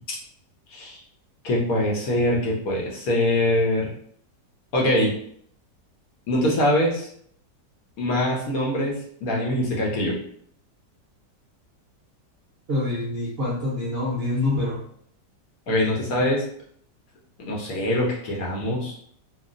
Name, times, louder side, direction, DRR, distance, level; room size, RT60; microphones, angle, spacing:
voice 1, 0.7-1.0 1.4-3.9 4.7-5.1 6.3-7.1 8.0-10.2 15.7-16.4 17.4-18.9, left 1 dB, 65° left, -3 dB, 1.0 m, -23 dB
voice 2, 12.7-14.8, left 2 dB, 65° right, -6 dB, 0.6 m, -26 dB
3.0 x 2.4 x 2.4 m, 0.64 s
omnidirectional pair, 1.9 m